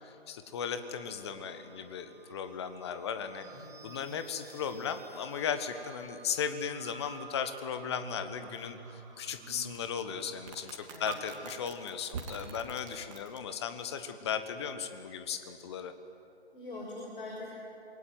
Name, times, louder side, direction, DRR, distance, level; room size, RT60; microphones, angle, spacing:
voice 1, 0.0-3.5 3.8-15.9, left 7 dB, 25° left, 9 dB, 1.4 m, -36 dB
sound 1, 0.8-13.4, right 5 dB, 30° right, 3.2 m, -48 dB
voice 2, 3.4-3.8 10.9-11.2 16.5-17.6, left 2 dB, 50° left, -2 dB, 6.3 m, -43 dB
26.5 x 23.5 x 9.4 m, 2.8 s
figure-of-eight pair, 145°, 33 cm